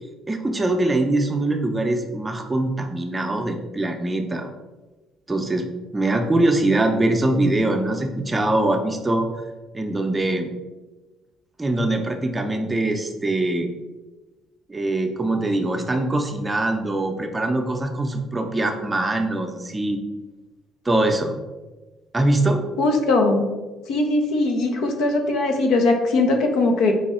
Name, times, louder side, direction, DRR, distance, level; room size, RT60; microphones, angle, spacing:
voice 1, 0.3-4.5 5.3-5.7 5.9-9.3 9.7-10.5 11.6-13.7 14.7-20.0 20.8-21.4 22.1-22.6, right 2 dB, 20° right, 4 dB, 0.6 m, -22 dB
voice 2, 22.8-23.5 23.9-26.9, left 2 dB, 75° left, 4 dB, 0.7 m, -20 dB
4.8 x 2.2 x 4.2 m, 1.2 s
supercardioid pair, 80°, 0 cm